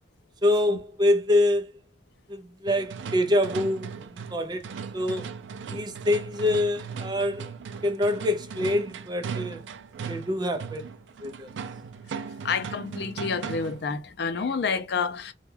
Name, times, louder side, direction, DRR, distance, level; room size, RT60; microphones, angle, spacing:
voice 1, 0.4-1.7 2.3-4.7 4.9-5.3 5.7-7.5 7.8-9.6 10.1-10.9 11.2-11.5, left 1 dB, 25° right, 0.4 m, -25 dB
sound 1, 2.7-13.9, right 6 dB, 85° right, 0.3 m, -38 dB
voice 2, 12.4-15.3, left 5 dB, 65° left, 0.5 m, -29 dB
2.2 x 2.2 x 3.1 m
head